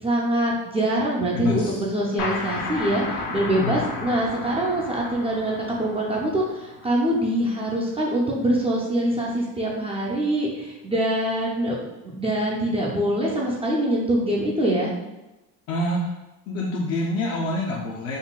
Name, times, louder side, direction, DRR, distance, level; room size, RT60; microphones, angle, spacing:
voice 1, 0.0-11.7 12.2-14.9, right 1 dB, 15° right, -4 dB, 0.4 m, -24 dB
voice 2, 1.3-1.8 3.6-3.8 15.7-16.0 16.5-18.2, left 2 dB, 45° left, -3 dB, 0.4 m, -26 dB
sound 1, 2.2-7.6, left 3 dB, 80° left, 0.7 m, -33 dB
3.8 x 2.1 x 2.3 m, 1.0 s
cardioid pair, 125°, 37 cm